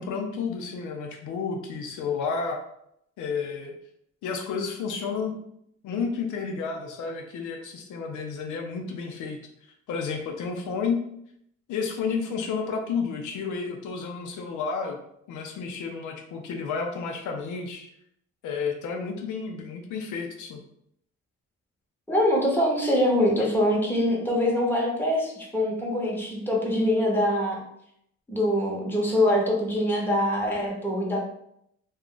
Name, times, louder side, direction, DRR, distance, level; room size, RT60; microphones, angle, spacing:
voice 1, 0.0-2.7 3.2-3.7 4.2-5.4 5.8-9.4 9.9-11.0 11.7-15.0 15.3-17.9 18.4-20.6, left 5 dB, 80° left, 3 dB, 0.6 m, -31 dB
voice 2, 22.1-27.6 28.3-31.2, left 1 dB, 5° left, -3 dB, 1.0 m, -24 dB
2.3 x 2.3 x 3.8 m, 0.73 s
cardioid pair, 90°, 30 cm